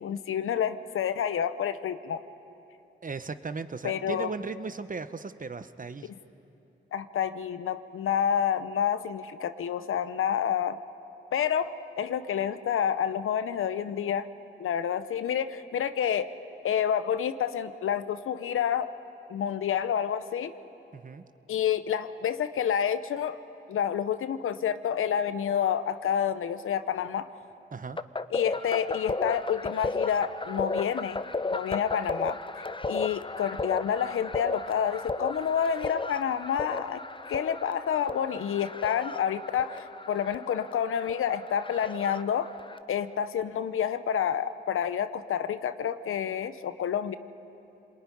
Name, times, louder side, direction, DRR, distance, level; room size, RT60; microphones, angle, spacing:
voice 1, 0.0-2.2 3.8-4.3 6.9-10.8 11.3-14.3 14.6-16.3 16.6-18.9 19.3-20.5 21.5-23.4 23.7-27.3 28.3-31.2 31.5-32.4 32.9-37.0 37.3-42.5 42.9-47.2, left 8 dB, 85° left, 12 dB, 0.9 m, -29 dB
voice 2, 3.0-6.1 20.9-21.2 27.7-28.0, right 4 dB, 40° right, 11 dB, 1.1 m, -36 dB
sound 1, 28.0-42.8, left 3 dB, 25° left, 0.8 m, -35 dB
27.5 x 20.5 x 10.0 m, 2.9 s
cardioid pair, 55°, 21 cm